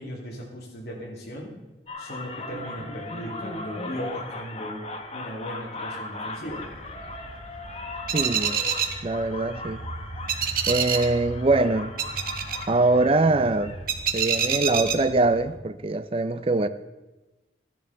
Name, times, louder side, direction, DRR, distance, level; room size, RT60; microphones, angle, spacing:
voice 1, 0.0-1.6 2.0-4.8 5.1-6.7, equal, 60° left, 2.7 m, -37 dB
sound 1, 1.9-13.8, left 2 dB, 35° left, 1.0 m, -38 dB
sound 2, 6.5-15.6, right 7 dB, 50° right, 0.8 m, -30 dB
voice 2, 8.1-8.6 9.0-9.8 10.7-11.9 12.7-13.8 14.1-16.7, right 2 dB, 30° right, 0.4 m, -23 dB
13.5 x 10.5 x 4.1 m
head